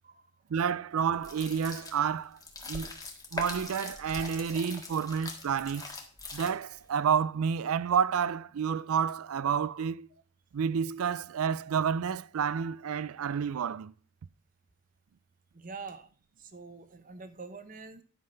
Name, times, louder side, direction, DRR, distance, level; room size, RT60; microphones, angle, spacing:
voice 1, 0.5-2.4 2.6-3.0 3.3-5.9 6.3-10.1 10.5-13.9, right 7 dB, 80° right, 0.4 m, -30 dB
sound 1, 1.2-6.8, left 2 dB, 15° left, 1.6 m, -42 dB
voice 2, 15.5-16.1 16.4-18.0, right 4 dB, 40° right, 0.9 m, -45 dB
11.0 x 5.7 x 5.6 m
head